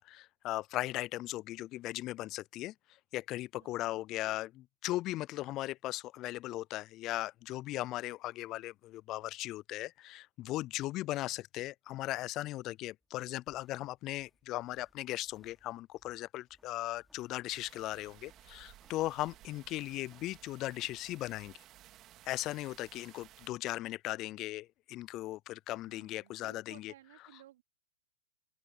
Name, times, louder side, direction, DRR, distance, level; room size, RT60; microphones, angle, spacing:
voice 1, 0.0-2.7 3.1-21.5 22.2-26.9, left 16 dB, 35° left, 0.4 m, -38 dB
voice 2, 3.6-4.0 11.0-11.3 19.5-19.9 25.9-27.6, right 14 dB, 60° right, 3.8 m, -59 dB
sound 1, 13.0-21.6, equal, ahead, 5.5 m, -70 dB
sound 2, 17.5-23.5, right 14 dB, 35° right, 2.3 m, -58 dB
open air
hypercardioid pair, 110°, 0 cm